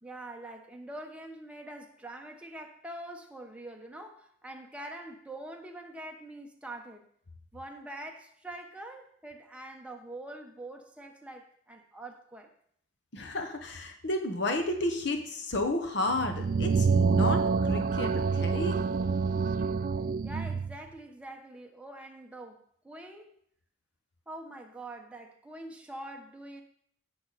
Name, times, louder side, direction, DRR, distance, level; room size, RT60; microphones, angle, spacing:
voice 1, 0.0-7.1 7.5-12.5 20.2-23.3 24.3-26.6, right 1 dB, 5° right, 2 dB, 1.1 m, -44 dB
voice 2, 13.1-18.8, left 2 dB, 60° left, 4 dB, 1.1 m, -32 dB
sound 1, 16.1-20.8, right 5 dB, 45° right, 0.3 m, -27 dB
15.5 x 6.6 x 4.2 m, 0.67 s
head